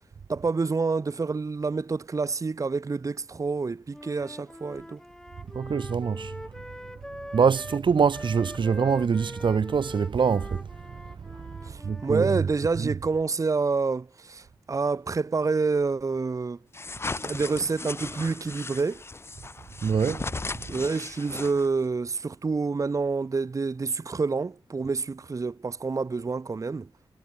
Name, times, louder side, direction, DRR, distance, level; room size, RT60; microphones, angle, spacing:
voice 1, 0.3-5.0 11.6-16.6 17.2-19.0 20.7-26.9, right 4 dB, 35° right, 0.9 m, -28 dB
Wind instrument woodwind instrument, 3.9-12.2, left 1 dB, 5° left, 1.9 m, -43 dB
voice 2, 5.5-6.4 7.3-11.1 11.6-12.3 12.8-13.0 19.8-20.2, right 6 dB, 60° right, 1.1 m, -25 dB
sound 1, 16.7-21.9, left 3 dB, 25° left, 0.9 m, -36 dB
wide cardioid pair, 100°, 9 cm